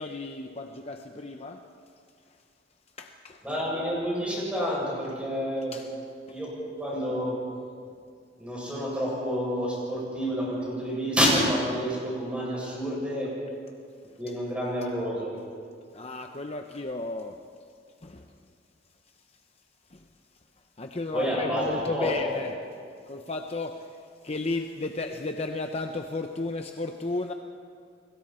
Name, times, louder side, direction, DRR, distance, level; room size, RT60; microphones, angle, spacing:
voice 1, 0.0-1.7 3.0-3.4 5.7-5.9 6.3-6.4 15.9-17.4 18.0-18.3 19.9-20.0 20.8-22.5 23.1-24.0 24.2-27.3, left 2 dB, 35° left, 4 dB, 0.8 m, -34 dB
voice 2, 3.4-5.8 6.3-7.4 8.4-13.3 14.2-15.3 21.1-22.4, equal, 5° right, -5 dB, 7.3 m, -29 dB
30.0 x 21.5 x 4.4 m, 2.2 s
head